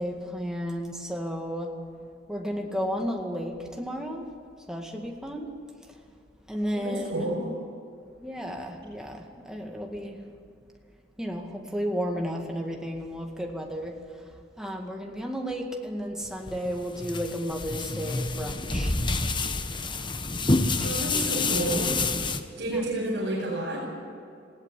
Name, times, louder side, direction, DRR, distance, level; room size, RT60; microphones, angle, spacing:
voice 1, 0.0-1.7 2.3-4.3 4.7-5.5 6.5-7.3 8.2-10.2 11.2-13.9 14.6-18.9 20.0-20.1 20.8-21.6 22.7-22.8, equal, 5° right, 1 dB, 2.1 m, -33 dB
voice 2, 6.7-7.5 20.8-22.0 22.6-23.8, right 1 dB, 60° right, -6 dB, 5.6 m, -30 dB
sound 1, 16.2-22.4, left 3 dB, 25° left, 1.0 m, -28 dB
20.0 x 16.0 x 8.4 m, 2.5 s
head